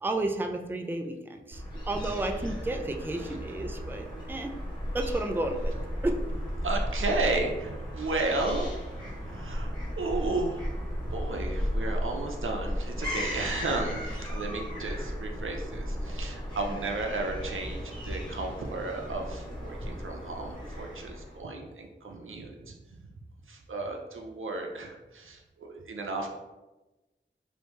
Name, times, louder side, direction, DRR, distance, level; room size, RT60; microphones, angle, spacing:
voice 1, 0.0-4.5 4.9-5.7 6.0-6.2 16.7-16.8, right 2 dB, 10° right, 4 dB, 0.3 m, -32 dB
Fowl / Gull seagull, 1.5-21.4, equal, 20° left, 1.3 m, -35 dB
voice 2, 2.1-2.5 3.2-3.4 6.6-8.7 9.0-9.7 10.0-10.7 11.1-22.7 23.5-26.3, right 2 dB, 85° right, 2 dB, 0.5 m, -34 dB
3.0 x 2.6 x 3.4 m, 1.1 s
wide cardioid pair, 45°, 20 cm